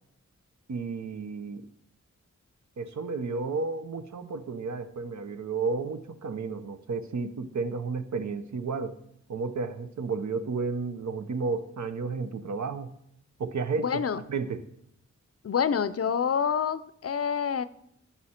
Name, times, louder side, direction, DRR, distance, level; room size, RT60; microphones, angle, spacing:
voice 1, 0.7-1.6 2.8-9.0 9.3-12.9 13.4-13.9 14.3-14.6, right 4 dB, 70° right, 10 dB, 0.7 m, -32 dB
voice 2, 13.8-14.2 15.4-17.6, left 7 dB, 55° left, 15 dB, 0.5 m, -27 dB
14.0 x 5.6 x 4.3 m, 0.74 s
wide cardioid pair, 115°, 30 cm